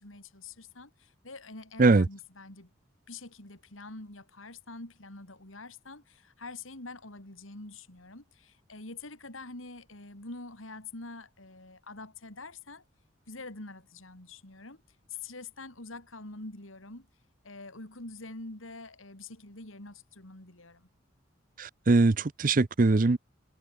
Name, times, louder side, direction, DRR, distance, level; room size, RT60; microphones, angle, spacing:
voice 1, 0.0-2.7 3.1-12.8 13.3-14.8 15.1-17.1 17.4-20.9, left 3 dB, 90° left, 4.1 m, -45 dB
voice 2, 21.6-23.2, right 3 dB, 40° right, 0.6 m, -22 dB
head